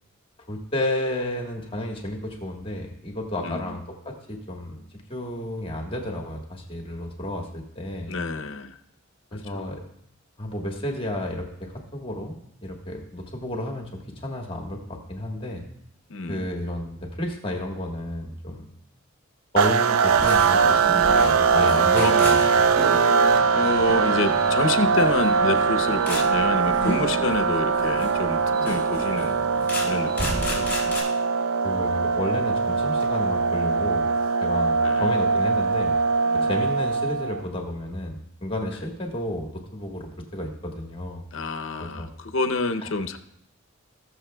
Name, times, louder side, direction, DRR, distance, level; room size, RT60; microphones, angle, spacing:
voice 1, 0.5-4.8 5.1-8.1 9.3-9.8 10.4-13.9 14.2-15.6 16.3-18.6 19.5-20.8 21.2-22.6 31.6-34.1 34.4-35.9 36.3-41.3 41.8-42.1 42.8-42.9, left 1 dB, 25° left, 1 dB, 1.3 m, -31 dB
voice 2, 3.4-3.8 8.1-8.8 9.3-9.6 16.1-16.5 22.0-22.1 23.5-29.4 29.8-30.8 33.6-33.8 34.8-35.1 36.3-36.5 38.7-38.8 41.3-43.2, left 3 dB, 65° left, 8 dB, 0.7 m, -28 dB
sound 1, 19.6-37.4, right 5 dB, 80° right, 0.4 m, -22 dB
sound 2, 20.1-31.0, equal, 10° left, 3.8 m, -33 dB
20.0 x 6.7 x 2.2 m, 0.78 s
head